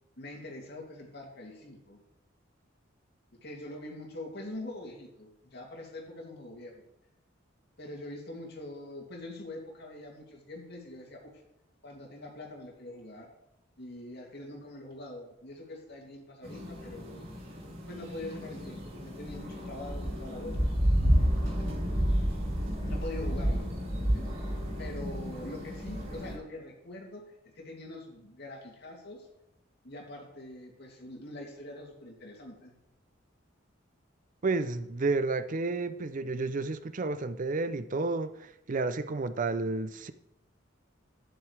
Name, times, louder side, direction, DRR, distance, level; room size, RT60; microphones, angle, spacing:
voice 1, 0.2-2.0 3.3-6.8 7.8-11.4 11.8-13.3 13.8-17.3 17.9-21.4 22.8-23.8 24.1-27.2 27.5-29.3 29.8-32.8, left 1 dB, 55° left, 2.8 m, -44 dB
sound 1, 16.4-26.3, equal, 85° right, 4.6 m, -31 dB
voice 2, 34.4-40.1, right 3 dB, 40° right, 0.5 m, -31 dB
12.0 x 10.5 x 3.4 m
head